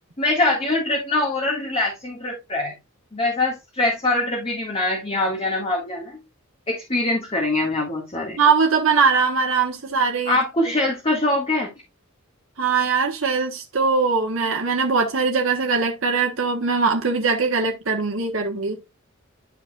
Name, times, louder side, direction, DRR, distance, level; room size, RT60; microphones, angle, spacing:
voice 1, 0.2-2.8 3.1-6.2 6.7-8.4 10.3-11.7, left 2 dB, 30° left, 1.9 m, -23 dB
voice 2, 8.4-10.4 12.6-18.8, right 5 dB, 75° right, 1.3 m, -21 dB
11.5 x 4.9 x 2.4 m
head